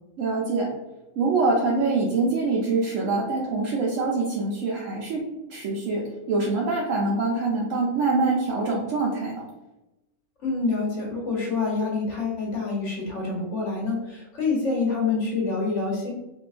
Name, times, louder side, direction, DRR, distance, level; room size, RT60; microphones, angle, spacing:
voice 1, 0.2-0.7 1.2-9.5 10.5-10.7 15.2-15.4, right 3 dB, 75° right, -3 dB, 1.0 m, -25 dB
voice 2, 10.4-16.1, left 4 dB, 70° left, -3 dB, 1.1 m, -27 dB
3.7 x 2.6 x 2.4 m, 0.98 s
omnidirectional pair, 1.4 m